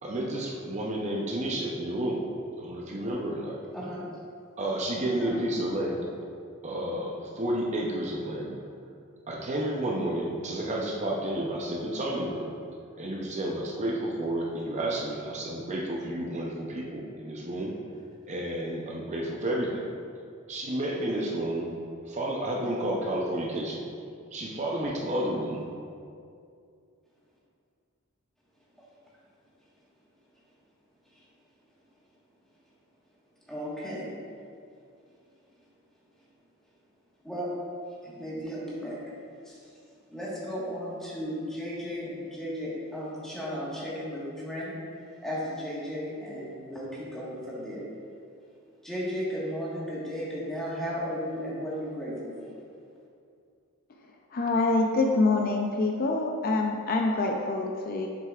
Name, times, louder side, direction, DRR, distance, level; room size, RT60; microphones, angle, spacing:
voice 1, 0.0-2.3 2.6-3.6 4.6-6.1 6.6-8.6 9.3-12.5 13.0-17.8 18.3-19.9 20.5-21.7 22.0-23.9 24.3-25.6, right 1 dB, 30° right, -2 dB, 0.6 m, -31 dB
voice 2, 3.7-4.0 5.1-5.4 31.1-31.3 33.5-34.1 37.2-37.5 37.9-39.0 39.4-39.8 40.1-44.8 45.2-47.8 48.8-52.6, equal, ahead, -7 dB, 1.4 m, -35 dB
voice 3, 54.3-58.1, left 3 dB, 40° left, 2 dB, 0.4 m, -25 dB
7.5 x 6.5 x 2.4 m, 2.4 s
head